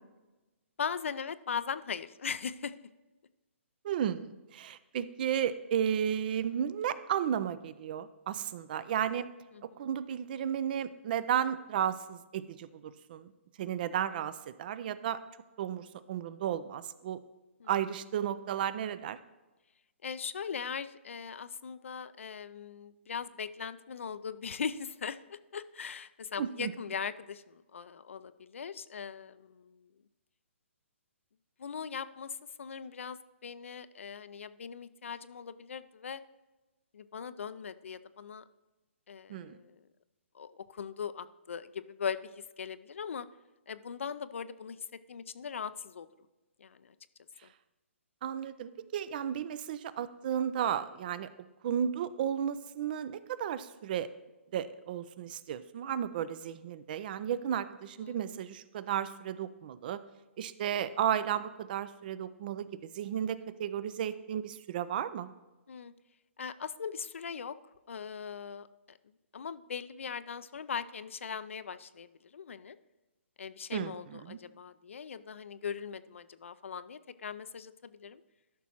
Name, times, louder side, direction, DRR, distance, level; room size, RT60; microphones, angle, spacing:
voice 1, 0.8-2.8 9.5-9.9 17.6-17.7 20.0-29.9 31.6-36.2 36.9-38.4 39.1-39.9 40.3-43.3 43.7-46.1 46.6-46.9 47.4-47.5 58.0-58.2 65.7-65.9 66.4-67.6 67.9-69.0 69.3-72.8 73.4-78.2, left 6 dB, 70° left, 14 dB, 0.4 m, -40 dB
voice 2, 3.8-9.3 9.8-13.3 13.6-15.2 15.6-17.2 17.7-19.2 26.4-26.7 39.3-39.6 48.2-51.3 51.6-54.1 54.5-60.0 60.4-65.3 73.7-74.4, right 9 dB, 40° right, 16 dB, 0.4 m, -33 dB
13.0 x 6.1 x 2.9 m, 1.1 s
figure-of-eight pair, 135°, 7 cm